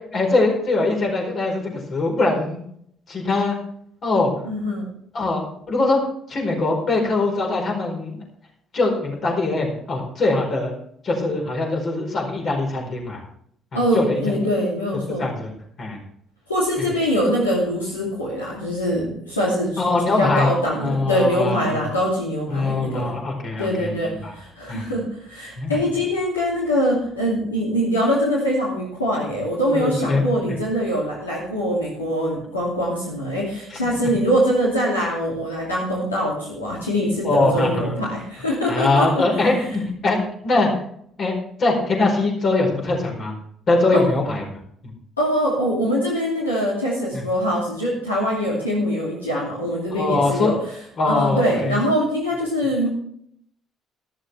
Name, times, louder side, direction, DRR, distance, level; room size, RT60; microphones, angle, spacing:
voice 1, 0.1-2.6 3.1-3.5 4.0-4.3 5.1-6.0 6.3-8.2 8.7-10.7 11.0-13.2 13.7-14.3 15.1-15.5 15.8-16.0 16.8-16.9 19.8-20.5 20.8-21.8 22.5-24.3 24.7-24.8 25.6-25.8 29.7-30.5 33.7-34.1 37.2-38.0 38.7-40.7 41.2-41.3 41.6-43.4 43.7-44.6 44.8-44.9 47.1-47.2 49.9-50.6 51.0-51.8, left 2 dB, 45° left, 1 dB, 4.5 m, -22 dB
voice 2, 4.4-4.9 13.7-15.3 16.5-19.9 20.2-23.1 23.6-39.2 43.9-44.0 45.2-50.5 51.0-52.9, equal, 85° left, -5 dB, 2.7 m, -23 dB
13.5 x 13.0 x 3.4 m, 0.67 s
figure-of-eight pair, 50°, 0 cm